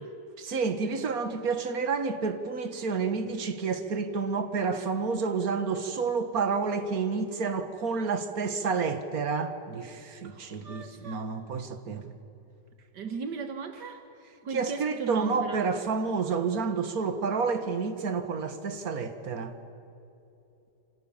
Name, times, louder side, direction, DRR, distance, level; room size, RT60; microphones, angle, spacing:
voice 1, 0.4-12.1 14.5-19.6, right 5 dB, 60° right, 2.2 m, -30 dB
voice 2, 10.2-11.2 12.9-14.0 14.4-15.6, right 5 dB, 75° right, 1.9 m, -37 dB
28.5 x 27.0 x 7.3 m
omnidirectional pair, 1.8 m